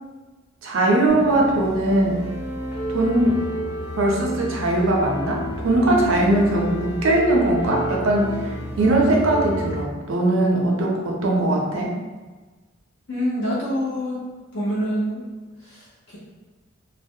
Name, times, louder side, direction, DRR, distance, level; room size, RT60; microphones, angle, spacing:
voice 1, 0.6-2.2 2.9-3.4 4.0-11.9, right 1 dB, 75° right, -1 dB, 0.5 m, -20 dB
sound 1, 1.1-9.8, equal, 85° left, 1.4 m, -31 dB
voice 2, 13.1-14.2 14.5-15.2 15.6-16.2, equal, 60° left, -8 dB, 0.6 m, -26 dB
2.3 x 2.0 x 2.7 m, 1.3 s
head